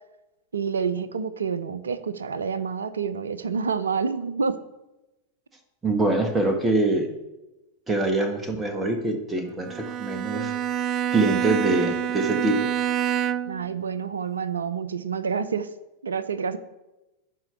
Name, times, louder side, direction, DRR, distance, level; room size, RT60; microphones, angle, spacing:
voice 1, 0.5-4.6 13.5-15.7 16.0-16.6, right 6 dB, 70° right, 14 dB, 0.7 m, -28 dB
voice 2, 5.8-7.2 7.9-10.5 11.1-12.7, right 2 dB, 15° right, 6 dB, 1.5 m, -24 dB
Bowed string instrument, 9.6-13.7, right 10 dB, 30° right, 0.4 m, -27 dB
12.5 x 4.6 x 8.2 m, 1.0 s
figure-of-eight pair, 90°, 0 cm